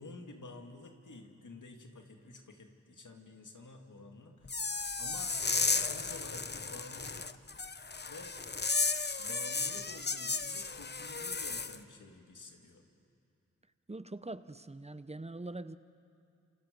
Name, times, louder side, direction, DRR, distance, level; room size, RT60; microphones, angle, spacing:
voice 1, 0.0-4.7 5.0-5.3 5.7-7.2 8.1-8.4 9.2-12.8, left 3 dB, 90° left, 3 dB, 2.2 m, -50 dB
sound 1, 4.5-11.8, left 4 dB, 35° left, 0.8 m, -34 dB
voice 2, 13.9-15.8, right 2 dB, 20° right, 13 dB, 0.7 m, -43 dB
29.0 x 27.5 x 5.2 m, 2.6 s
wide cardioid pair, 50°, 30 cm